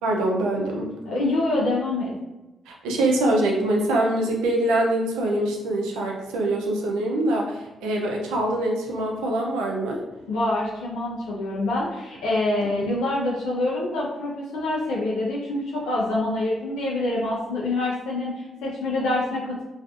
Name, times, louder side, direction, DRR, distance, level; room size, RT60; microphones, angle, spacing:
voice 1, 0.0-0.9 2.7-10.0 12.6-12.7, right 1 dB, 85° right, 0 dB, 0.4 m, -24 dB
voice 2, 1.1-2.1 10.3-19.6, left 2 dB, 85° left, -6 dB, 0.5 m, -26 dB
2.4 x 2.3 x 2.4 m, 1.0 s
supercardioid pair, 55°, 0 cm